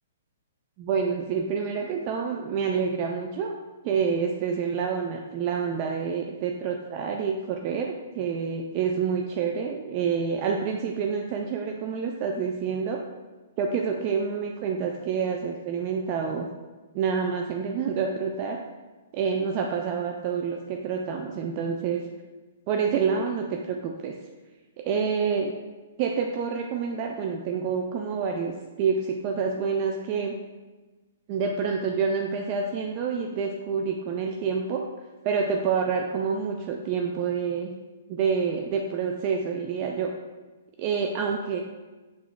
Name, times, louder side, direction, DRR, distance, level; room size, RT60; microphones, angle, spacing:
voice 1, 0.8-3.5 3.8-13.0 13.6-16.5 16.9-18.6 19.1-22.0 22.7-24.1 24.9-25.5 26.0-30.3 31.3-34.9 35.2-37.7 38.1-40.1 40.8-41.6, right 6 dB, 40° right, 2 dB, 0.3 m, -27 dB
5.0 x 3.4 x 2.2 m, 1.2 s
hypercardioid pair, 135°, 0 cm